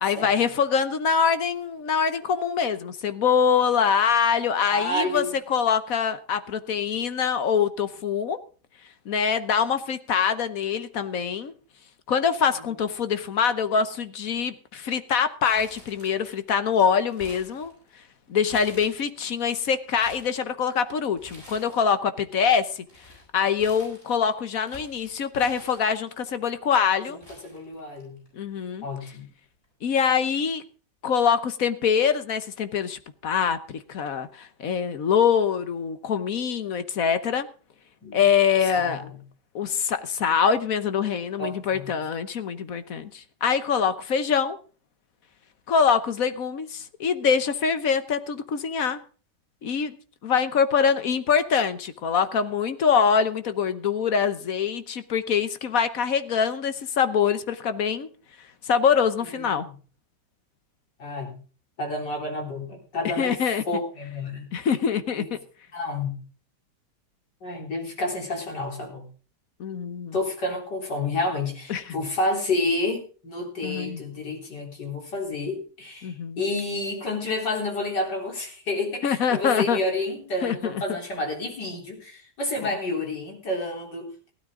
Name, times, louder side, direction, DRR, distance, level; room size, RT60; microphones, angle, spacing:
voice 1, 0.0-8.4 9.0-11.5 12.1-17.7 18.3-22.8 23.3-27.2 28.3-28.8 29.8-30.6 31.0-37.5 38.1-39.0 39.5-44.6 45.7-49.0 49.6-50.0 50.2-58.1 58.6-59.7 63.2-63.6 64.5-65.4 69.6-70.2 71.7-71.9 73.6-74.0 76.0-76.4 79.0-79.8 80.4-80.7, left 7 dB, 55° left, 11 dB, 1.3 m, -24 dB
voice 2, 4.7-5.3 27.1-28.2 28.8-29.3 38.0-38.2 38.7-39.2 41.4-41.9 59.3-59.7 61.0-61.4 61.8-63.3 63.7-64.5 65.1-65.3 65.7-66.2 67.4-69.1 70.1-84.3, left 2 dB, 80° left, 1 dB, 4.4 m, -30 dB
Crumpling crinkling, 15.5-16.5 16.8-18.1 18.5-19.3 19.7-20.3 21.2-22.0 22.2-26.3 26.9-27.0 27.2-28.3 28.6-28.7 29.6-29.9, left 1 dB, 30° left, 8.3 m, -48 dB
16.0 x 12.5 x 3.8 m, 0.38 s
omnidirectional pair, 1.8 m